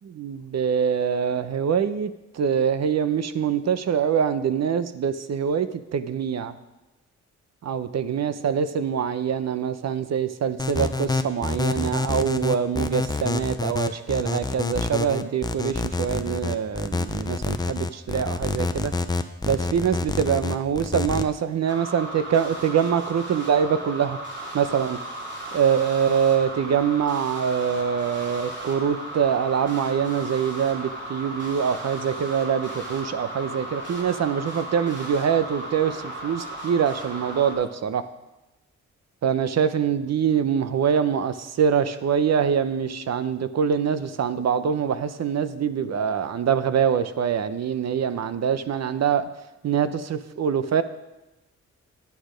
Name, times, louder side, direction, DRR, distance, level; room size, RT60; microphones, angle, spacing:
voice 1, 0.0-6.5 7.6-18.9 19.4-24.2 24.5-25.0 25.5-38.1 39.2-49.3 49.6-50.8, right 7 dB, 60° right, 12 dB, 0.7 m, -24 dB
sound 1, 10.6-21.2, left 3 dB, 15° left, 0.5 m, -27 dB
sound 2, 21.7-37.5, right 1 dB, 40° right, 2.9 m, -36 dB
10.5 x 8.5 x 5.1 m, 1.0 s
wide cardioid pair, 125°, 30 cm